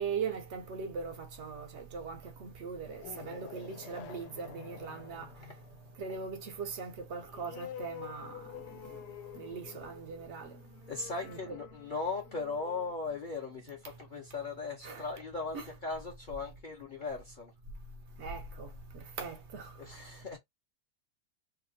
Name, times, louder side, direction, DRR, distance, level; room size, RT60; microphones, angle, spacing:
voice 1, 0.0-5.3 6.0-9.0 9.3-10.5 11.2-11.6 14.8-15.1 15.5-15.7 18.2-19.8, right 5 dB, 65° right, 0.7 m, -40 dB
sound 1, 2.7-14.0, left 10 dB, 90° left, 1.2 m, -49 dB
voice 2, 10.9-17.5 19.8-20.4, left 4 dB, 45° left, 0.7 m, -38 dB
2.8 x 2.3 x 2.6 m
omnidirectional pair, 1.6 m